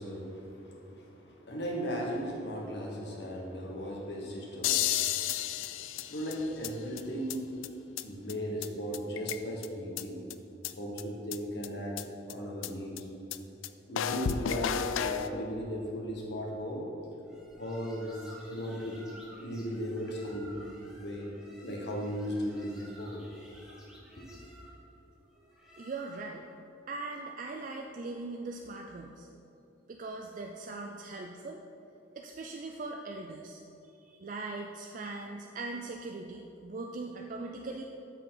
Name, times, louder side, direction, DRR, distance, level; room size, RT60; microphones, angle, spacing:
voice 1, 0.0-7.7 8.0-10.2 10.8-12.0 12.3-13.0 13.9-16.8 17.6-18.2 18.5-19.0 19.4-20.6 21.0-21.4 21.6-23.2 24.2-24.3, equal, 60° left, -2 dB, 1.4 m, -37 dB
sound 1, 4.6-6.7 7.0-7.1 7.3-7.4 7.6-7.7 8.0-8.1 8.3-8.4 8.6-8.7 8.9-9.7 10.0-10.1 10.3-10.4 10.6-10.7 11.0-11.1 11.3-11.4 11.6-11.7 12.0-12.1 12.3-12.4 12.6-12.7 13.0-13.1 13.3-13.4 13.6-13.7 14.0-15.3, left 10 dB, 90° left, 0.3 m, -32 dB
sound 2, 17.3-26.5, equal, 5° right, 1.1 m, -54 dB
voice 2, 25.8-26.5 26.9-29.3 29.9-31.6 32.2-33.6 34.0-37.8, right 3 dB, 40° right, 2 dB, 0.4 m, -40 dB
13.0 x 4.6 x 3.9 m, 2.9 s
head